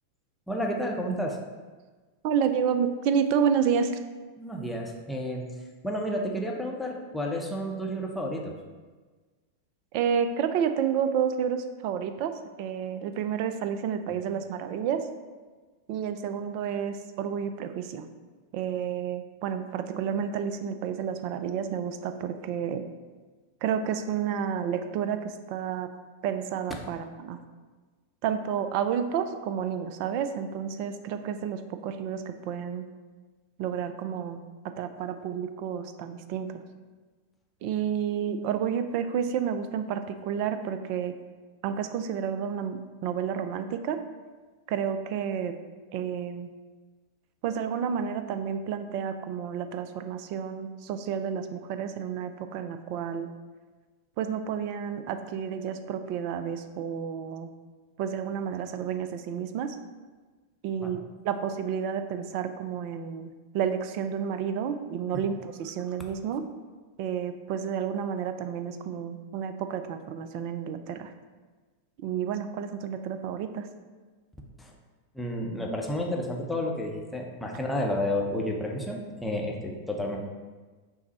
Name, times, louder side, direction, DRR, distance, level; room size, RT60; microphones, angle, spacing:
voice 1, 0.5-1.4 4.4-5.5 5.8-8.6 60.8-61.0 65.1-65.2 74.6-74.7 75.1-80.2, left 1 dB, 5° left, -1 dB, 0.6 m, -31 dB
voice 2, 2.2-3.9 9.9-12.3 12.6-15.0 15.9-18.1 18.5-22.9 23.6-25.2 25.5-25.9 26.2-27.4 28.2-32.9 33.6-34.4 34.8-36.5 37.6-41.1 41.6-44.0 44.7-45.5 45.9-46.5 47.4-53.3 54.2-57.5 58.0-59.8 60.6-66.4 67.0-71.1 72.0-73.7, right 8 dB, 45° right, 9 dB, 0.3 m, -30 dB
5.8 x 2.0 x 4.0 m, 1.4 s
figure-of-eight pair, 90°, 0 cm